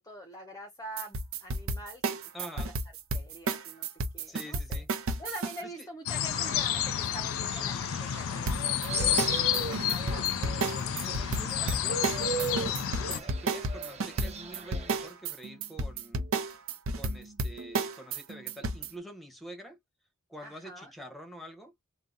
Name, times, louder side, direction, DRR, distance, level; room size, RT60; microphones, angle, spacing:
voice 1, 0.0-2.2 2.6-2.7 3.1-3.9 4.1-4.8 5.2-8.6 9.0-10.4 13.5-13.9 20.4-20.9, equal, 15° left, 0.5 m, -45 dB
sound 1, 1.0-5.6 8.5-18.9, right 3 dB, 75° right, 0.6 m, -32 dB
voice 2, 2.3-2.7 4.3-4.9 5.6-5.9 8.9-12.6 13.1-16.3 16.9-19.8 20.3-21.7, equal, ahead, 0.9 m, -47 dB
sound 2, 6.1-13.2, left 10 dB, 75° left, 0.4 m, -30 dB
Fowl, 6.3-15.1, right 4 dB, 30° right, 0.8 m, -39 dB
2.7 x 2.1 x 3.7 m
head